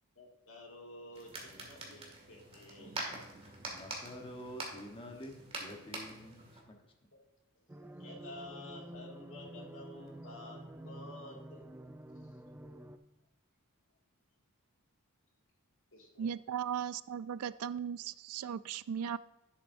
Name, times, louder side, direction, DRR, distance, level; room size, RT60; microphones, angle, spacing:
voice 1, 0.2-3.0 8.0-11.6 12.2-12.3 15.9-16.3, left 2 dB, 65° left, -1 dB, 2.2 m, -51 dB
sound 1, 1.1-6.6, right 2 dB, 30° right, 2.1 m, -45 dB
voice 2, 3.7-5.3 5.6-6.4 6.7-6.8, equal, 25° left, 2 dB, 1.1 m, -47 dB
sound 2, 7.7-13.0, right 1 dB, 10° right, 0.4 m, -49 dB
voice 3, 16.2-19.2, right 8 dB, 80° right, 17 dB, 0.3 m, -37 dB
10.5 x 7.9 x 2.6 m, 0.98 s
head